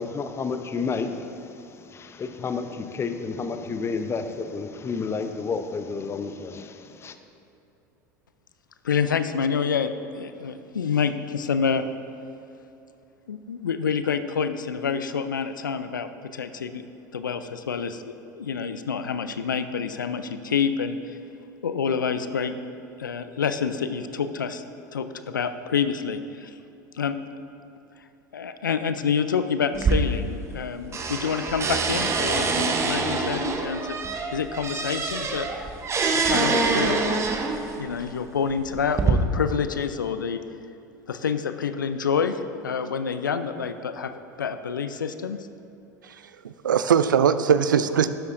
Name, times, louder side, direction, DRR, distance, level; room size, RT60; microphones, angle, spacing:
voice 1, 0.0-7.2, left 4 dB, 25° left, 8 dB, 0.6 m, -31 dB
voice 2, 8.8-11.8 13.3-16.8 17.1-21.2 21.6-22.5 23.0-24.6 24.9-26.5 26.9-27.1 28.3-33.9 34.3-35.5 36.1-37.3 37.8-40.4 41.1-44.1 44.4-45.5, left 6 dB, 85° left, 10 dB, 0.4 m, -27 dB
sound 1, 29.7-30.7 30.9-37.8 38.5-39.1, right 4 dB, 25° right, 0.9 m, -25 dB
voice 3, 46.0-48.1, right 7 dB, 85° right, 12 dB, 0.4 m, -21 dB
12.5 x 7.8 x 2.6 m, 2.8 s
hypercardioid pair, 80°, 10 cm